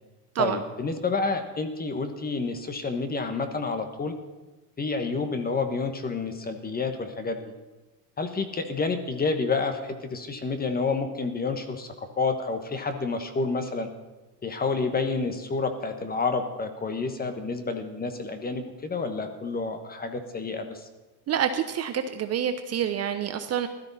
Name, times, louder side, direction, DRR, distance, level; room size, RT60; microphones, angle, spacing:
voice 1, 0.4-4.1 4.8-7.4 8.2-13.9 14.4-20.9, left 4 dB, 20° left, 8 dB, 1.3 m, -29 dB
voice 2, 21.3-23.7, right 9 dB, 30° right, 8 dB, 0.8 m, -27 dB
16.5 x 13.0 x 4.2 m, 1.2 s
supercardioid pair, 115°, 49 cm